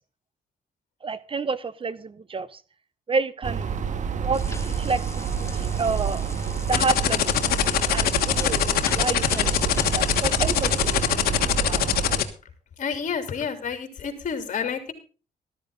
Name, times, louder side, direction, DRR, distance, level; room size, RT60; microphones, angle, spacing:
voice 1, 1.0-2.6 3.1-3.7 4.2-6.2 6.7-11.8, right 4 dB, 35° right, 17 dB, 0.9 m, -30 dB
sound 1, 3.4-12.2, right 6 dB, 55° right, 1.7 m, -28 dB
sound 2, 4.3-11.1, left 2 dB, 20° left, 2.3 m, -40 dB
sound 3, 6.7-12.2, left 13 dB, 85° left, 1.4 m, -22 dB
voice 2, 12.8-14.9, left 6 dB, 55° left, 7 dB, 3.4 m, -29 dB
13.0 x 13.0 x 3.8 m, 0.35 s
cardioid pair, 80°, 15 cm